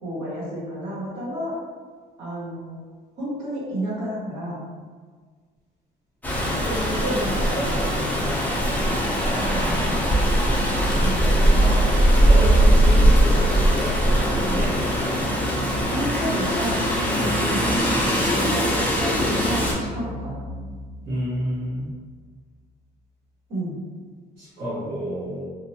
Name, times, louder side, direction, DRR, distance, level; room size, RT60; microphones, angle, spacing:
voice 1, 0.0-1.5 2.2-2.7 3.2-4.6 6.4-8.8 11.0-11.3 15.9-17.7 18.4-20.5 23.5-23.8, equal, 80° right, -9 dB, 1.4 m, -31 dB
Rain, 6.2-19.7, equal, 10° left, 0.6 m, -20 dB
voice 2, 9.2-10.2 10.9-12.0 12.2-14.0 14.3-14.9 21.0-21.9 24.4-25.4, equal, 65° right, -12 dB, 1.0 m, -30 dB
sound 1, 9.5-22.8, left 1 dB, 25° right, 0.9 m, -36 dB
2.6 x 2.2 x 2.6 m, 1.5 s
cardioid pair, 110°, 17 cm